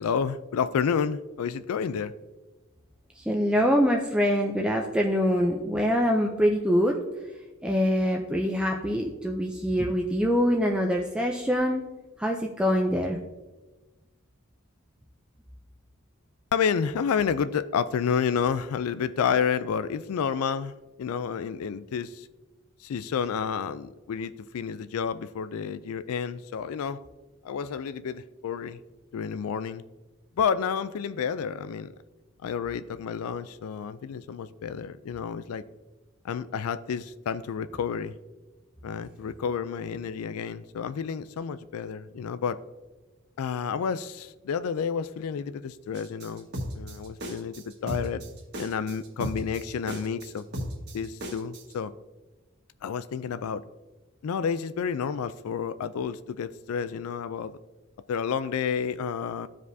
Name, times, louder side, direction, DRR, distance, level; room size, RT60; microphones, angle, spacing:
voice 1, 0.0-2.1 16.5-22.3 22.8-27.0 27.4-28.8 29.1-29.8 30.4-31.9 32.4-35.6 36.2-38.1 38.8-42.6 43.4-46.5 46.7-47.6 47.8-48.2 48.6-50.7 50.9-51.9 52.8-53.6 54.2-57.6 58.1-59.5, left 7 dB, 80° left, 13 dB, 0.4 m, -30 dB
voice 2, 3.2-7.0 7.6-11.8 12.2-13.2, equal, 5° right, 1 dB, 0.4 m, -24 dB
sound 1, 45.9-51.7, equal, 50° right, 1.6 m, -35 dB
14.5 x 5.0 x 2.7 m, 1.2 s
head